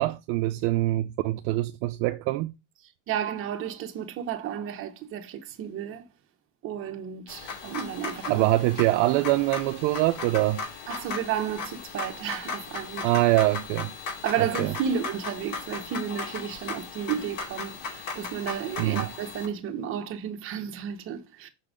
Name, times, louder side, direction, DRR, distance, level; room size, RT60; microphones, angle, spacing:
voice 1, 0.0-2.5 8.3-10.6 13.0-13.9 14.6-14.7 18.8-19.1, right 18 dB, 65° right, 0.5 m, -24 dB
voice 2, 3.1-6.0 6.6-8.5 10.9-13.0 14.2-21.5, right 8 dB, 35° right, 0.9 m, -32 dB
sound 1, 7.3-19.5, left 4 dB, 70° left, 2.7 m, -37 dB
6.1 x 3.9 x 5.0 m
cardioid pair, 155°, 36 cm